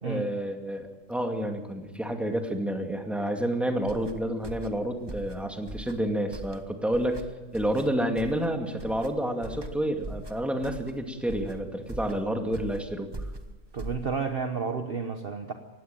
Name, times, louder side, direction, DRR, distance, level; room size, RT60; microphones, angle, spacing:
voice 1, 0.0-7.2 7.5-13.1, right 1 dB, ahead, 4 dB, 2.2 m, -29 dB
sound 1, 3.8-14.4, right 1 dB, 20° right, 1.0 m, -42 dB
voice 2, 13.7-15.5, right 5 dB, 40° right, 6 dB, 1.2 m, -31 dB
18.5 x 16.0 x 9.1 m, 1.2 s
omnidirectional pair, 1.6 m